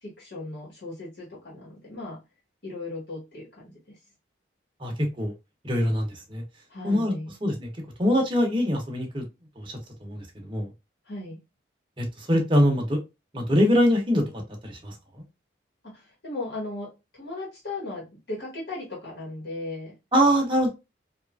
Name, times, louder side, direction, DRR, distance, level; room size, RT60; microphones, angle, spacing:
voice 1, 0.0-2.2 2.6-4.0 6.7-7.3 11.1-11.4 15.8-20.0, left 2 dB, 60° left, -4 dB, 1.2 m, -37 dB
voice 2, 4.8-5.3 5.6-6.4 6.8-7.1 7.4-7.7 8.0-9.2 9.6-10.7 12.0-13.0 13.3-14.2 14.6-14.9 20.1-20.7, equal, 25° right, 1 dB, 0.7 m, -23 dB
2.9 x 2.4 x 2.2 m, 0.24 s
head